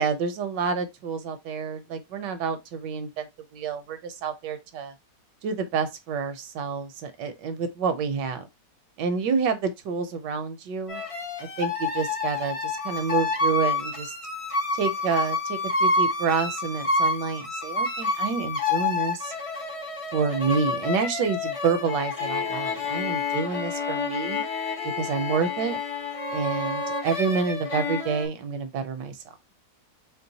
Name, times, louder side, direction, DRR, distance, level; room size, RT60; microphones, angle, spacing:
voice 1, 0.0-3.3 3.5-4.9 5.4-8.5 9.0-11.0 11.4-14.1 14.7-19.3 20.1-24.4 25.0-25.8 26.3-29.2, right 5 dB, 75° right, 1.3 m, -28 dB
sound 1, 10.9-28.2, left 3 dB, 35° left, 0.5 m, -28 dB
4.5 x 2.1 x 3.9 m
omnidirectional pair, 1.9 m